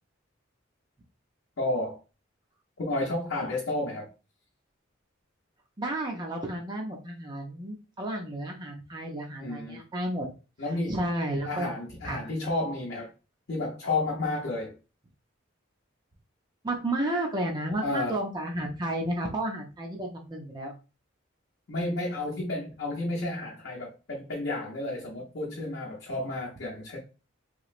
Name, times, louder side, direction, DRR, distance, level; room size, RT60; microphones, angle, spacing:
voice 1, 1.6-2.0 2.8-4.1 9.4-9.8 10.6-11.1 11.4-13.1 13.5-14.8 17.8-18.2 21.7-27.0, left 2 dB, 60° left, 0.7 m, -31 dB
voice 2, 5.8-10.3 10.9-11.7 12.0-12.2 16.6-20.7, right 1 dB, 20° right, 0.5 m, -32 dB
3.0 x 2.9 x 2.4 m
head